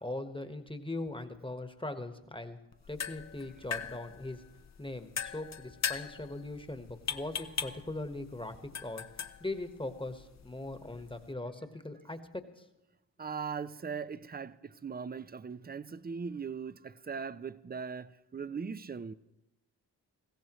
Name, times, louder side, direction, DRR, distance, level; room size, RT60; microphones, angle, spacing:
voice 1, 0.0-2.6 2.9-4.4 4.8-9.1 9.4-12.6, left 2 dB, 10° left, 1.3 m, -40 dB
sound 1, 2.7-11.3, left 7 dB, 40° left, 0.7 m, -41 dB
voice 2, 13.2-19.1, right 6 dB, 20° right, 0.5 m, -39 dB
20.5 x 15.5 x 3.1 m
supercardioid pair, 45°, 43 cm